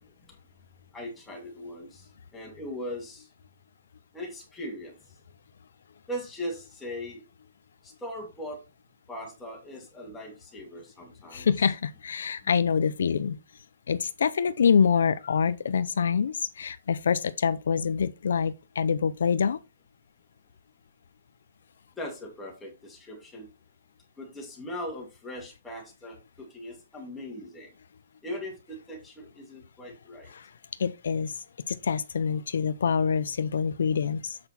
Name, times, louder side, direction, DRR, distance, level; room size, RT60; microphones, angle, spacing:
voice 1, 0.9-3.3 4.1-4.9 6.1-7.2 7.8-8.6 9.1-11.5 22.0-23.5 24.2-27.7 28.2-30.3, left 1 dB, 5° left, 2.4 m, -39 dB
voice 2, 11.3-13.4 13.9-19.6 30.3-30.5 30.8-31.3 31.7-34.4, left 6 dB, 80° left, 0.6 m, -26 dB
7.8 x 5.9 x 4.3 m
hypercardioid pair, 170°, 0 cm